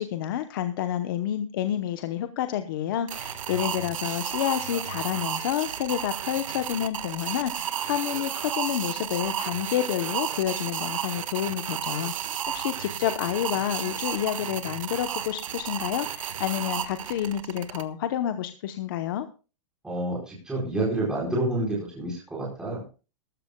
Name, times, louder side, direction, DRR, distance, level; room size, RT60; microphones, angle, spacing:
voice 1, 0.0-19.3, left 11 dB, 40° left, 9 dB, 0.9 m, -29 dB
sound 1, 3.1-17.8, right 9 dB, 75° right, 1.4 m, -33 dB
voice 2, 19.8-22.8, right 1 dB, 5° right, -4 dB, 4.4 m, -29 dB
19.5 x 13.5 x 2.2 m, 0.33 s
supercardioid pair, 170°, 17 cm